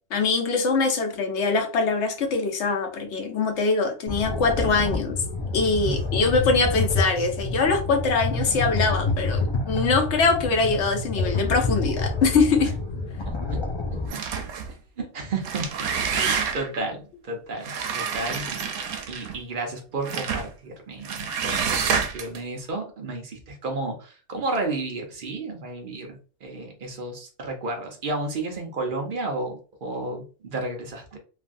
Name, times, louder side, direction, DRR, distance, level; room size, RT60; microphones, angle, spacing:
voice 1, 0.1-5.2 5.5-12.7, left 4 dB, 70° left, 4 dB, 1.0 m, -23 dB
sound 1, 4.1-14.1, left 2 dB, 40° left, 0.4 m, -28 dB
sound 2, 14.1-14.7 15.3-16.8 17.6-19.4 20.0-20.5 21.0-22.4, right 6 dB, 90° right, 0.9 m, -28 dB
voice 2, 15.0-15.7 16.1-18.6 19.1-31.2, right 2 dB, 50° right, 2 dB, 0.7 m, -32 dB
3.3 x 2.3 x 2.5 m, 0.37 s
omnidirectional pair, 1.3 m